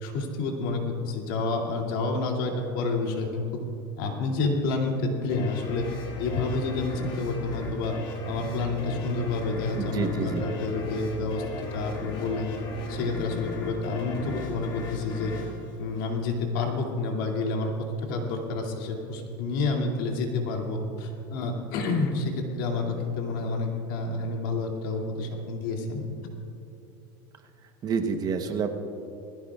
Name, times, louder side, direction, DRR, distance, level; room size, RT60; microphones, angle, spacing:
voice 1, 0.0-3.6 4.0-5.9 6.2-7.9 8.3-12.5 12.9-15.3 15.8-17.7 18.0-26.0, left 3 dB, 70° left, 1 dB, 2.5 m, -29 dB
sound 1, 5.3-16.6, left 3 dB, 45° left, 2.9 m, -37 dB
sound 2, 8.4-21.3, left 4 dB, 10° right, 2.0 m, -45 dB
voice 2, 9.7-10.5 27.8-28.7, right 5 dB, 35° right, 7 dB, 1.0 m, -28 dB
20.5 x 15.5 x 2.4 m, 2.8 s
supercardioid pair, 130°, 12 cm